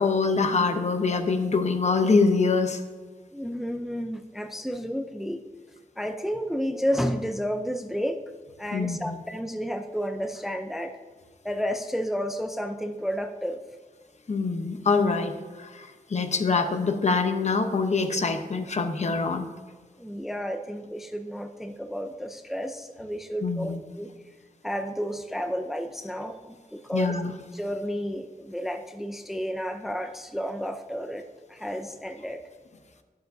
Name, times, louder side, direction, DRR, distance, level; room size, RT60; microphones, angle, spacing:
voice 1, 0.0-2.8 8.7-9.2 14.3-19.5 23.4-23.8 26.9-27.3, left 4 dB, 45° left, 6 dB, 0.9 m, -24 dB
voice 2, 3.3-5.4 6.0-8.2 8.6-10.9 11.4-13.6 20.0-24.1 24.6-27.2 27.5-31.2 31.5-32.4, equal, ahead, 6 dB, 0.5 m, -31 dB
12.0 x 11.0 x 2.7 m, 1.5 s
wide cardioid pair, 125°, 15 cm